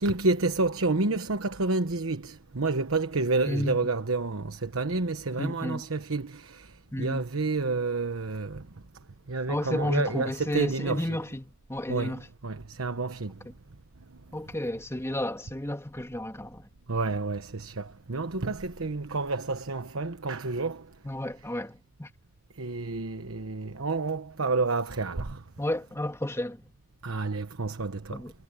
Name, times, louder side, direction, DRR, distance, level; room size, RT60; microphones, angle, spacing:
voice 1, 0.0-6.6 7.0-8.6 9.3-11.2 11.9-13.3 16.9-20.8 22.6-25.4 27.0-28.2, right 3 dB, 90° right, 1.1 m, -29 dB
voice 2, 3.4-3.8 5.4-5.8 6.9-7.3 9.5-12.2 13.4-13.5 14.3-16.7 21.0-22.1 25.6-26.6 28.1-28.3, left 1 dB, 15° left, 2.9 m, -32 dB
head